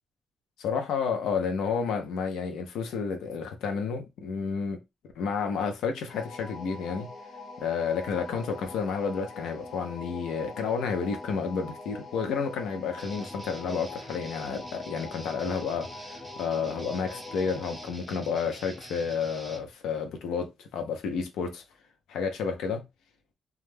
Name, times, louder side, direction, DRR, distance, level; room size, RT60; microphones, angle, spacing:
voice 1, 0.6-4.8 5.2-7.1 7.6-21.6 22.1-22.9, left 5 dB, 90° left, 0.5 m, -31 dB
sound 1, 6.1-17.9, left 3 dB, 55° left, 0.8 m, -43 dB
Guitar, 13.0-19.7, right 1 dB, 5° right, 0.5 m, -46 dB
2.3 x 2.1 x 3.2 m
cardioid pair, 165°, 0 cm